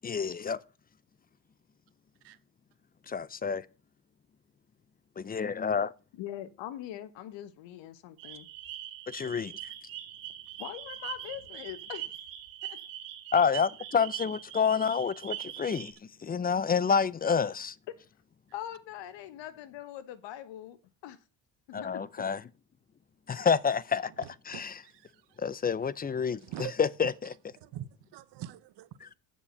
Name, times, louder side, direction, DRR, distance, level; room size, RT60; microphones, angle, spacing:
voice 1, 0.0-0.6 3.1-3.7 5.2-5.9 9.1-9.5 13.3-15.9 16.2-17.7 21.7-22.4 23.3-24.1 24.5-24.7 25.4-26.4 26.8-27.3, left 6 dB, 20° left, 0.5 m, -28 dB
voice 2, 6.2-8.5 10.6-12.1 12.6-12.8 18.5-20.8 21.0-21.2 21.7-22.3, left 12 dB, 70° left, 1.3 m, -42 dB
sound 1, 8.2-15.9, right 12 dB, 80° right, 2.6 m, -42 dB
voice 3, 24.2-25.4 26.4-26.7 27.6-29.1, right 13 dB, 65° right, 0.9 m, -44 dB
7.2 x 6.8 x 6.4 m
supercardioid pair, 80°, 45 cm